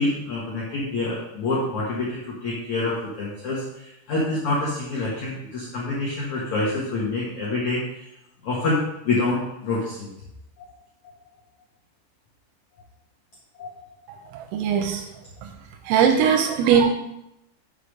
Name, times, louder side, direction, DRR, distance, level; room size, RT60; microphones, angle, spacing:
voice 1, 0.0-8.1 8.4-10.1 13.6-13.8, left 2 dB, 85° left, -5 dB, 1.6 m, -27 dB
voice 2, 14.5-15.0 15.9-16.9, right 7 dB, 85° right, 5 dB, 3.3 m, -19 dB
6.9 x 5.1 x 6.5 m, 0.85 s
omnidirectional pair, 5.9 m